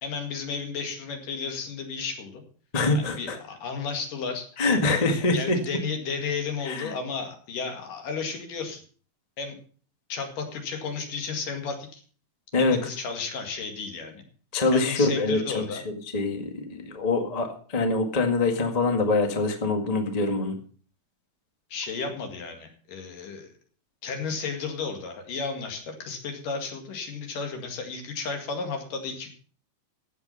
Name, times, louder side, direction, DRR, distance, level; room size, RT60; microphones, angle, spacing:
voice 1, 0.0-2.4 3.0-4.5 5.1-8.8 9.4-9.6 10.1-12.0 12.6-14.2 14.7-15.8 21.7-23.5 24.0-29.3, left 5 dB, 65° left, 4 dB, 3.6 m, -33 dB
voice 2, 2.7-3.4 4.6-5.6 6.6-6.9 12.5-12.8 14.5-15.6 16.1-20.5, left 3 dB, 35° left, 4 dB, 0.6 m, -24 dB
14.5 x 8.3 x 5.5 m, 0.42 s
omnidirectional pair, 4.3 m